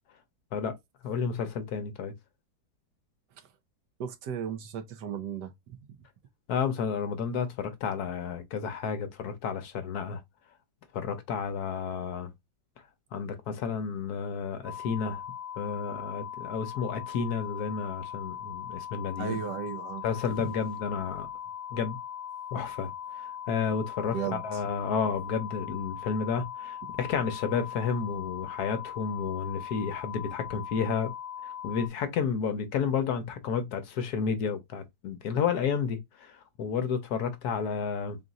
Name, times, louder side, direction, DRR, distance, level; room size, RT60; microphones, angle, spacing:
voice 1, 1.0-2.1 6.5-10.2 10.9-12.3 13.1-15.2 15.6-19.4 20.0-21.3 21.7-22.0 22.5-31.1 31.4-38.2, left 6 dB, 65° left, 1.1 m, -31 dB
voice 2, 4.0-6.0 19.2-20.0 24.1-24.6, right 8 dB, 75° right, 1.3 m, -35 dB
sound 1, 14.6-31.9, left 9 dB, 50° right, 0.8 m, -40 dB
3.8 x 2.5 x 3.9 m
omnidirectional pair, 1.9 m